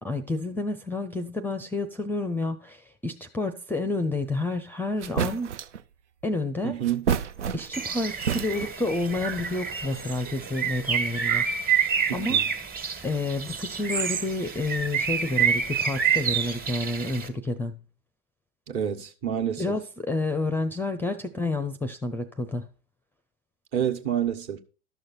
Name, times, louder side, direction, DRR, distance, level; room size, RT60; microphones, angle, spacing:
voice 1, 0.0-5.5 6.2-6.8 7.5-11.8 12.1-12.4 13.0-17.8 19.6-22.7, left 2 dB, 5° left, 0.5 m, -29 dB
sound 1, 4.6-4.7 5.0-5.8 6.8-7.9 8.2-8.9, right 7 dB, 85° right, 0.5 m, -29 dB
voice 2, 6.6-7.0 12.2-12.4 18.7-19.6 23.7-24.6, right 9 dB, 40° right, 1.4 m, -28 dB
Bird, 7.7-17.3, right 7 dB, 25° right, 1.6 m, -28 dB
12.5 x 6.4 x 4.2 m
figure-of-eight pair, 90°, 35 cm